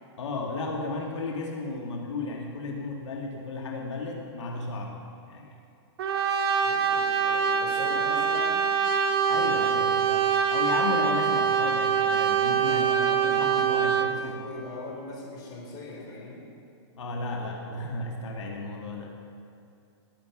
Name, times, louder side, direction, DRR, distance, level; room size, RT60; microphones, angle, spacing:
voice 1, 0.2-5.0 5.3-5.5 9.3-12.9 13.2-14.4 17.0-19.1, left 3 dB, 85° left, 0 dB, 1.9 m, -34 dB
Brass instrument, 6.0-14.2, right 7 dB, 55° right, 1.6 m, -24 dB
voice 2, 6.6-8.7 12.7-16.5, left 2 dB, 25° left, -2 dB, 3.9 m, -40 dB
19.5 x 7.7 x 5.9 m, 2.6 s
hypercardioid pair, 150°, 15 cm